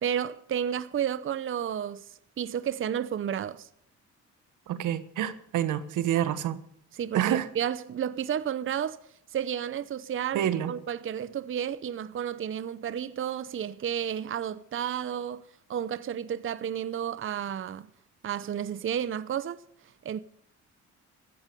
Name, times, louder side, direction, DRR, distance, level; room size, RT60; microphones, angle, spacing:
voice 1, 0.0-3.7 6.9-9.0 9.3-17.9 18.2-19.6 20.0-20.2, right 9 dB, 45° right, 0.7 m, -32 dB
voice 2, 4.7-6.6 7.1-7.5 10.3-10.7, right 11 dB, 85° right, 1.3 m, -27 dB
15.0 x 13.5 x 5.3 m
cardioid pair, 90°, 30 cm